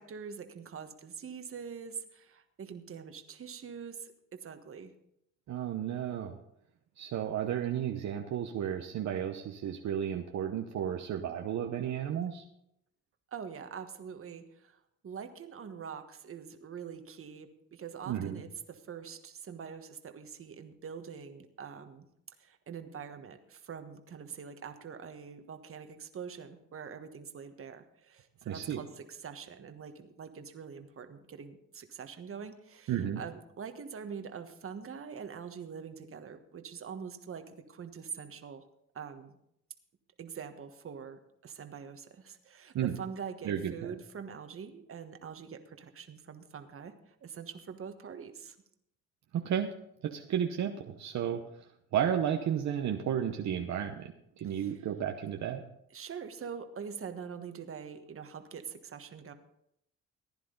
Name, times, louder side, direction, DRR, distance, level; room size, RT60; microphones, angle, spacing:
voice 1, 0.0-4.9 13.3-22.1 22.4-38.6 38.9-39.4 40.2-48.6 54.4-54.8 55.9-59.3, right 6 dB, 45° right, 7 dB, 1.4 m, -44 dB
voice 2, 5.5-6.4 7.0-12.4 18.1-18.4 28.5-28.8 32.9-33.2 42.7-43.0 43.4-43.9 49.3-49.7 50.0-51.4 51.9-55.6, right 9 dB, 65° right, 4 dB, 0.9 m, -33 dB
15.5 x 10.5 x 3.9 m, 0.75 s
cardioid pair, 90°, 30 cm